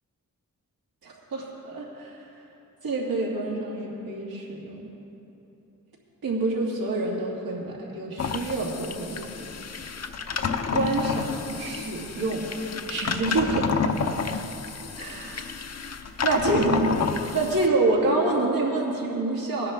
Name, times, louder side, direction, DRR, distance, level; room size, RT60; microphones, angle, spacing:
voice 1, 1.0-2.3 2.8-4.9 6.2-9.3 10.4-12.5 12.9-14.1 15.0-15.5 16.2-17.0 17.3-19.7, right 2 dB, 90° right, -4 dB, 2.6 m, -27 dB
sound 1, 8.2-17.7, left 5 dB, 45° left, 0.8 m, -30 dB
18.0 x 10.5 x 3.8 m, 3.0 s
cardioid pair, 60°, 35 cm